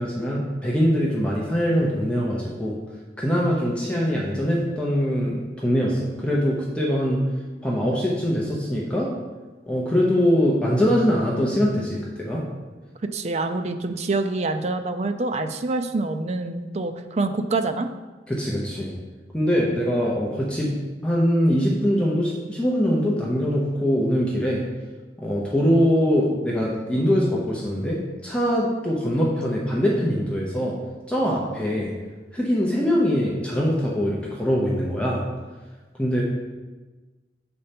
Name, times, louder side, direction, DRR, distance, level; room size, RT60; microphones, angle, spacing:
voice 1, 0.0-2.8 3.2-7.2 7.6-9.1 9.7-12.4 18.3-18.9 19.3-20.7 21.0-24.6 25.2-30.7 31.1-31.9 32.3-35.2 36.0-36.2, equal, 5° left, -4 dB, 0.8 m, -23 dB
voice 2, 13.1-17.9, right 3 dB, 35° right, 7 dB, 0.4 m, -26 dB
6.7 x 4.3 x 5.2 m, 1.3 s
head